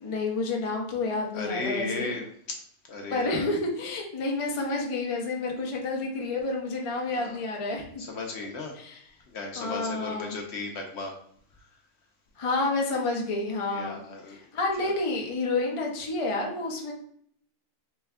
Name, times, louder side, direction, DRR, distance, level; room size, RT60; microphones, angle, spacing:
voice 1, 0.0-2.1 3.1-7.8 8.4-8.5 8.7-9.0 9.6-10.4 12.4-16.9, left 3 dB, 35° left, 0 dB, 0.5 m, -29 dB
voice 2, 1.3-2.6 2.9-3.4 7.1-7.4 8.1-8.7 9.3-11.1 13.7-14.4 14.8-14.9, left 3 dB, 60° left, 1 dB, 0.8 m, -35 dB
4.1 x 2.3 x 3.4 m, 0.65 s
omnidirectional pair, 1.4 m